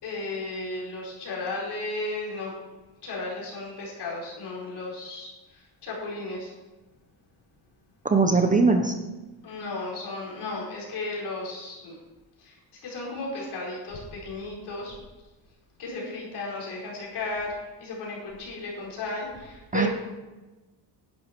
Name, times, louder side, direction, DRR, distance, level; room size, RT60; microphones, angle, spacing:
voice 1, 0.0-2.5 3.0-6.5 8.5-8.6 9.4-12.0 12.4-12.5 12.8-14.9 15.8-19.9, left 2 dB, 65° left, -3 dB, 4.6 m, -34 dB
voice 2, 8.0-8.9 19.7-19.9, right 4 dB, 20° right, 5 dB, 0.6 m, -20 dB
11.0 x 11.0 x 4.4 m, 1.2 s
cardioid pair, 165°, 44 cm